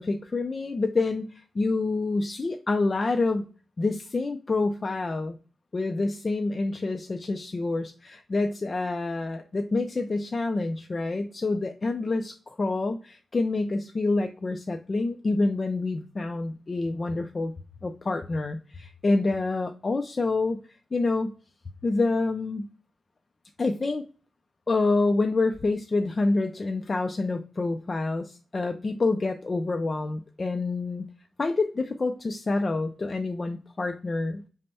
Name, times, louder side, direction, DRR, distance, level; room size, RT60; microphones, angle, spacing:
voice 1, 0.0-3.5 3.8-5.4 5.7-17.5 17.8-21.3 21.8-22.7 23.6-24.0 24.7-31.0 31.4-34.5, left 3 dB, 35° left, 5 dB, 0.4 m, -27 dB
5.3 x 2.1 x 4.2 m, 0.37 s
wide cardioid pair, 130°, 0 cm